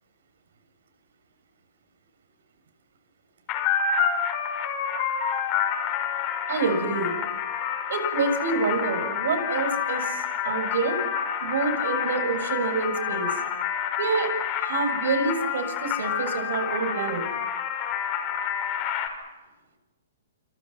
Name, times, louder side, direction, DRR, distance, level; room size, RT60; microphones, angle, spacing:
sound 1, 3.5-19.1, left 8 dB, 25° left, 5.7 m, -28 dB
voice 1, 6.5-7.1 7.9-11.0 11.4-13.3 14.0-14.3 14.5-17.2, right 4 dB, 70° right, 8 dB, 7.3 m, -27 dB
29.5 x 29.0 x 5.9 m, 1.1 s
hypercardioid pair, 160°, 0 cm